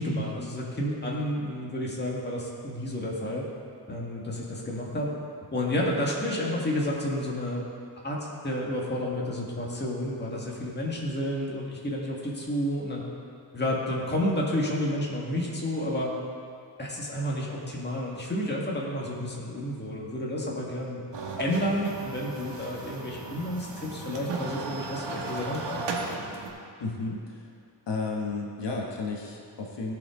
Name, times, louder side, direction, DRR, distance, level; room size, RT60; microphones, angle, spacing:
voice 1, 0.0-3.5 3.9-5.1 5.5-7.6 8.0-8.2 8.4-13.0 13.5-16.1 16.8-21.0 21.4-25.8, left 1 dB, 25° left, -3 dB, 1.8 m, -30 dB
sound 1, 21.1-26.5, right 3 dB, 85° right, 1.4 m, -36 dB
voice 2, 26.8-27.5 27.9-29.9, left 3 dB, 85° left, 0 dB, 1.2 m, -33 dB
16.0 x 5.9 x 3.7 m, 2.4 s
wide cardioid pair, 130°, 41 cm